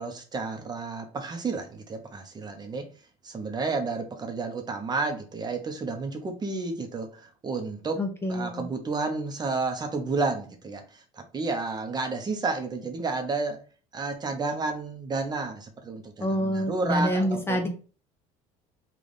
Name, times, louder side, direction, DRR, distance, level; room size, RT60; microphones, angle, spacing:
voice 1, 0.0-2.9 3.2-8.0 8.3-13.6 13.9-17.6, right 3 dB, 25° right, 6 dB, 0.8 m, -31 dB
voice 2, 8.0-8.6 16.2-17.7, equal, 15° left, 4 dB, 0.6 m, -27 dB
3.3 x 2.4 x 4.0 m, 0.37 s
supercardioid pair, 105°, 16 cm